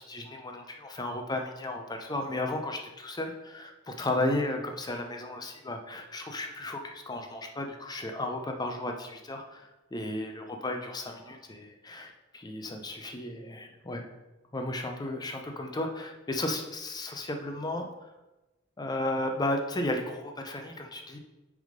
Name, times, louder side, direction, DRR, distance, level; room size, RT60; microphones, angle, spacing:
voice 1, 0.0-14.0 14.5-17.9 18.8-21.2, left 1 dB, 20° left, 4 dB, 0.6 m, -34 dB
6.4 x 3.5 x 5.1 m, 1.1 s
head